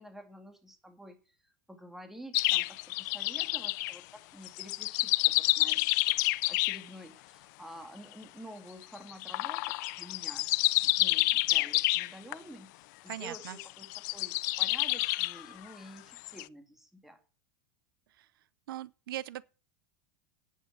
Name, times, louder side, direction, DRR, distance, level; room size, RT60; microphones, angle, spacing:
voice 1, 0.0-6.2 6.5-10.5 10.8-17.2, equal, 5° right, 1.9 m, -50 dB
sound 1, 2.3-4.0 4.4-6.8 9.1-12.3 13.1-15.4 16.2-16.4, left 22 dB, 55° left, 0.4 m, -29 dB
voice 2, 13.1-13.6 18.2-18.3 18.7-19.4, right 13 dB, 90° right, 0.6 m, -39 dB
9.9 x 8.3 x 6.4 m
supercardioid pair, 155°, 11 cm